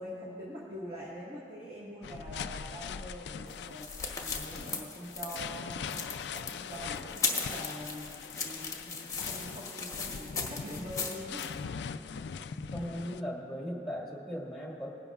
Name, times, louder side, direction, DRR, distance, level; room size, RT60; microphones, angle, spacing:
voice 1, 0.0-11.5, equal, 30° right, -7 dB, 1.5 m, -44 dB
sound 1, 2.0-13.2, left 6 dB, 70° left, 0.3 m, -41 dB
sound 2, 3.5-11.5, left 4 dB, 20° left, 0.9 m, -37 dB
voice 2, 12.7-14.9, equal, ahead, -3 dB, 1.7 m, -37 dB
20.0 x 10.5 x 2.4 m, 2.6 s
head